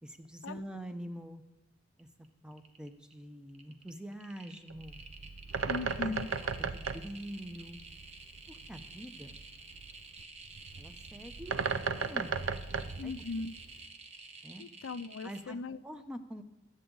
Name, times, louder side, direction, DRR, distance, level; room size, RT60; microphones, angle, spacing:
voice 1, 0.0-1.4 2.0-5.0 5.9-6.2 6.4-7.8 8.5-9.4 10.8-11.7 11.9-12.4 12.7-13.1 14.4-14.6 15.2-15.6 15.8-16.4, equal, 5° right, 7 dB, 0.8 m, -45 dB
sound 1, 2.0-2.3 2.5-3.1 3.5-15.4, right 4 dB, 35° right, 1.2 m, -50 dB
Bird, 4.7-13.9, right 5 dB, 85° right, 0.6 m, -37 dB
voice 2, 5.7-6.3 13.0-13.5 14.6-15.8, left 3 dB, 80° left, 14 dB, 0.5 m, -38 dB
21.5 x 8.1 x 3.9 m, 0.99 s
head